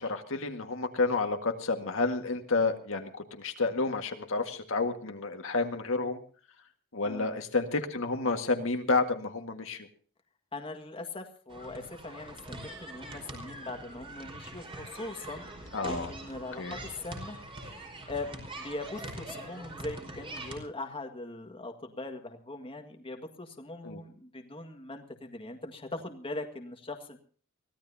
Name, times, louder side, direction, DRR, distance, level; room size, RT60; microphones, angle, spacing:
voice 1, 0.0-6.2 6.9-9.9 15.7-16.1 16.6-16.8 23.8-24.0, left 3 dB, 65° left, 5 dB, 1.9 m, -30 dB
voice 2, 7.0-7.5 10.5-27.2, left 2 dB, 25° left, 4 dB, 1.9 m, -41 dB
sound 1, 11.5-20.6, right 1 dB, 25° right, 4.9 m, -43 dB
23.5 x 17.0 x 2.8 m, 0.43 s
head